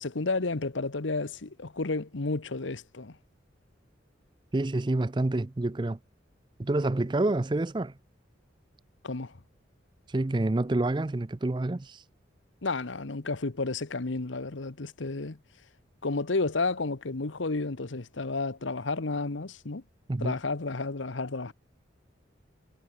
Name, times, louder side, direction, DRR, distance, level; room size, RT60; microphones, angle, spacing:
voice 1, 0.0-3.2 9.0-9.4 12.6-15.4 16.0-19.8 20.2-21.5, left 3 dB, 80° left, 1.1 m, -31 dB
voice 2, 4.5-6.0 6.6-7.9 10.1-12.0 20.1-20.4, right 2 dB, 25° right, 0.5 m, -28 dB
head